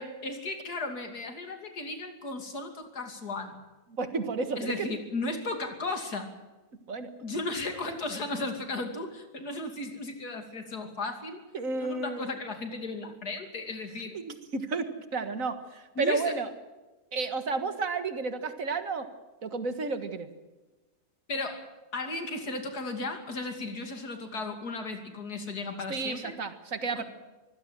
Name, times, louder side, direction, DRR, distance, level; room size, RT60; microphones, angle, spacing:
voice 1, 0.0-3.6 4.6-6.3 7.2-11.4 11.7-14.2 16.0-16.3 21.3-26.3 26.9-27.1, left 2 dB, 90° left, 5 dB, 3.2 m, -35 dB
voice 2, 4.0-4.9 6.9-7.1 11.5-12.3 14.1-16.5 17.1-19.1 19.4-20.3 25.9-27.0, right 4 dB, 60° right, 9 dB, 2.0 m, -32 dB
24.0 x 16.5 x 7.6 m, 1.2 s
omnidirectional pair, 1.6 m